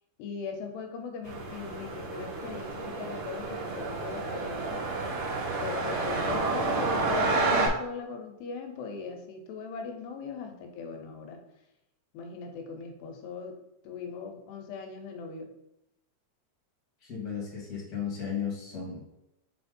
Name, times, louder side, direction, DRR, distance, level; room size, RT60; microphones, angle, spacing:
voice 1, 0.2-4.8 5.6-11.4 12.1-13.6 13.8-15.5, left 5 dB, 85° left, 3 dB, 3.0 m, -40 dB
sound 1, 1.2-7.7, right 3 dB, 35° right, 2.4 m, -30 dB
voice 2, 17.0-19.0, left 7 dB, 30° left, -4 dB, 2.2 m, -35 dB
5.8 x 4.7 x 4.3 m, 0.85 s
omnidirectional pair, 4.7 m